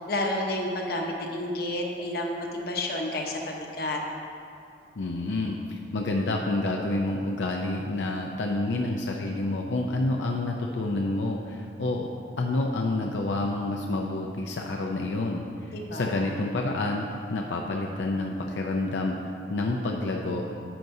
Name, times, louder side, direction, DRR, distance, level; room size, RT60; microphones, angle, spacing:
voice 1, 0.1-4.0 15.7-16.1, left 1 dB, 55° left, 0 dB, 1.0 m, -30 dB
voice 2, 5.0-12.1 12.4-20.5, left 2 dB, 85° left, 1 dB, 0.5 m, -29 dB
10.0 x 7.7 x 2.7 m, 2.6 s
head